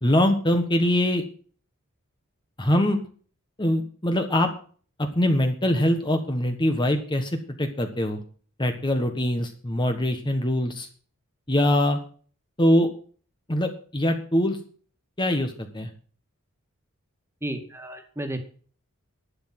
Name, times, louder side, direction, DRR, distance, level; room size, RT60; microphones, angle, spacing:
voice 1, 0.0-1.2 2.6-3.0 3.6-4.5 5.0-8.2 8.6-10.9 11.5-12.0 12.6-12.9 13.5-14.6 15.2-15.9, left 1 dB, 20° left, 5 dB, 1.4 m, -23 dB
voice 2, 17.4-18.4, right 1 dB, 10° right, 5 dB, 2.1 m, -32 dB
11.5 x 9.8 x 6.0 m, 0.43 s
head